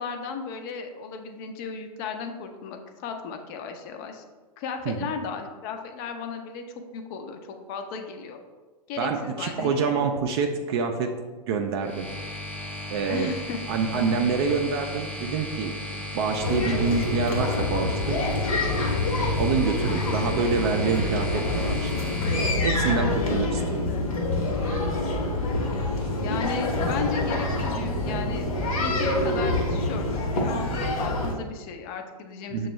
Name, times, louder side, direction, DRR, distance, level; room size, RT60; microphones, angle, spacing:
voice 1, 0.0-4.2 4.6-6.6 6.9-7.4 7.7-8.4 8.9-10.0 13.1-13.6 23.8-24.1 26.2-30.1 30.3-32.7, left 5 dB, 35° left, 5 dB, 0.5 m, -35 dB
voice 2, 9.0-11.1 11.5-12.1 12.9-13.3 13.7-18.2 19.4-21.9 22.6-23.9 32.5-32.7, right 5 dB, 40° right, 4 dB, 0.4 m, -26 dB
sound 1, 11.8-22.5, left 1 dB, 5° left, 0.8 m, -35 dB
sound 2, 16.4-31.3, left 2 dB, 60° left, 1.0 m, -26 dB
6.6 x 2.3 x 3.0 m, 1.3 s
figure-of-eight pair, 105°, 20 cm